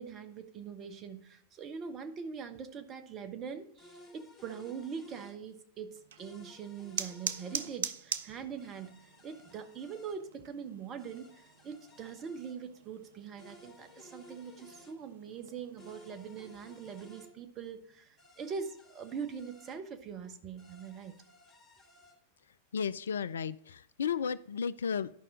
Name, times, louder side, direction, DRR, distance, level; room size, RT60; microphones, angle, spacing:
voice 1, 0.0-21.2, right 6 dB, 30° right, 1.1 m, -43 dB
sound 1, 3.8-5.4 6.2-7.7 8.6-10.2 11.0-12.6 13.4-15.0 15.8-17.3 18.2-19.8 20.6-22.2, left 1 dB, 30° left, 3.7 m, -57 dB
sound 2, 5.9-17.1, right 8 dB, 60° right, 0.5 m, -44 dB
voice 2, 22.7-25.1, left 7 dB, 65° left, 0.3 m, -33 dB
11.0 x 5.4 x 5.0 m
figure-of-eight pair, 90°, 0 cm